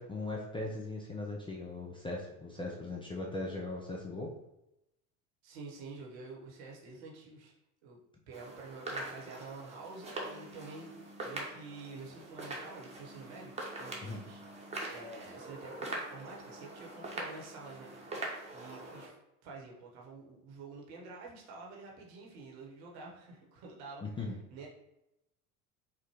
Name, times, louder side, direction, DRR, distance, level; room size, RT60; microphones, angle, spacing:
voice 1, 0.0-4.3 14.0-14.2 24.0-24.4, left 2 dB, 10° left, -2 dB, 0.4 m, -39 dB
voice 2, 5.4-7.5 7.8-8.0 8.3-14.4 14.9-19.1 19.4-24.0 24.5-24.7, right 3 dB, 65° right, -1 dB, 1.1 m, -48 dB
sound 1, 8.3-19.1, right 2 dB, 15° right, 0.9 m, -43 dB
4.8 x 2.1 x 3.0 m, 0.87 s
figure-of-eight pair, 65°, 45 cm